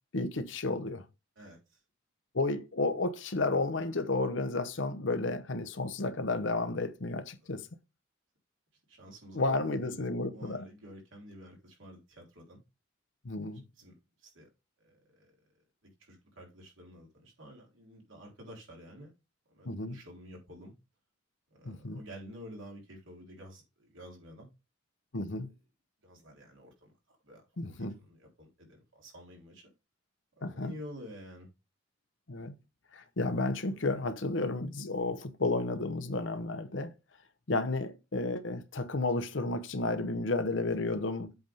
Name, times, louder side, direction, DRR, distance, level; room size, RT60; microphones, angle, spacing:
voice 1, 0.1-1.0 2.3-7.7 9.3-10.7 13.2-13.6 19.6-20.0 21.6-22.0 25.1-25.5 27.6-28.0 30.4-30.7 32.3-32.5 32.9-36.9 37.5-41.4, left 2 dB, 65° left, 0.8 m, -32 dB
voice 2, 1.4-1.8 8.9-12.6 13.8-13.9 14.2-14.5 14.8-15.3 16.0-19.1 19.5-20.7 21.5-24.5 26.0-27.4 27.7-29.7 30.4-31.5 33.7-34.1, equal, 70° right, 3.5 m, -50 dB
7.9 x 3.5 x 5.5 m
head